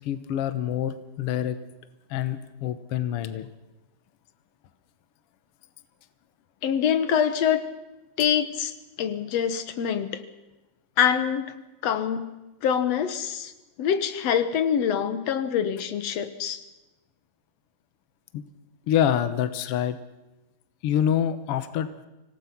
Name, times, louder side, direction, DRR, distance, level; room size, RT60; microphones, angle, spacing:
voice 1, 0.0-1.6 2.1-3.5 18.3-18.4 18.9-20.0 20.8-21.9, left 10 dB, 80° left, 12 dB, 1.3 m, -26 dB
voice 2, 6.6-7.6 8.2-10.2 11.0-11.5 11.8-12.3 12.6-13.5 13.8-16.6, left 8 dB, 60° left, 12 dB, 1.9 m, -25 dB
25.5 x 18.0 x 6.0 m, 1.0 s
omnidirectional pair, 4.0 m